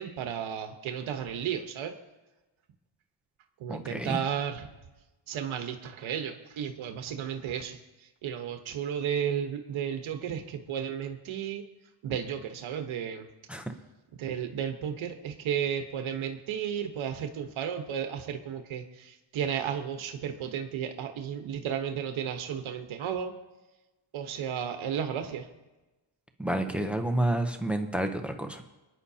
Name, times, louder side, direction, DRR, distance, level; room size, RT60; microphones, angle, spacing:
voice 1, 0.0-1.9 3.6-4.7 5.3-7.8 8.2-11.6 12.0-13.3 14.1-23.3 24.1-25.5, right 8 dB, 85° right, 5 dB, 1.2 m, -33 dB
voice 2, 3.7-4.2 13.5-13.7 26.4-28.6, right 1 dB, 5° right, 6 dB, 0.6 m, -29 dB
27.0 x 9.8 x 2.8 m, 1.1 s
wide cardioid pair, 180°, 47 cm